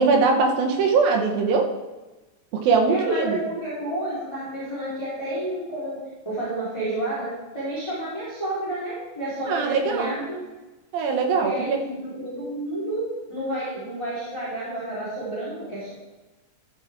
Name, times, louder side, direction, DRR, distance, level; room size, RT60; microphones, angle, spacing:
voice 1, 0.0-1.7 2.5-3.4 9.5-10.2 10.9-11.8, right 4 dB, 70° right, 2 dB, 2.4 m, -21 dB
voice 2, 2.9-6.0 6.2-7.3 7.5-10.4 11.3-13.0 13.3-15.9, right 1 dB, 5° left, -12 dB, 3.3 m, -30 dB
13.0 x 7.7 x 3.6 m, 1.1 s
omnidirectional pair, 5.2 m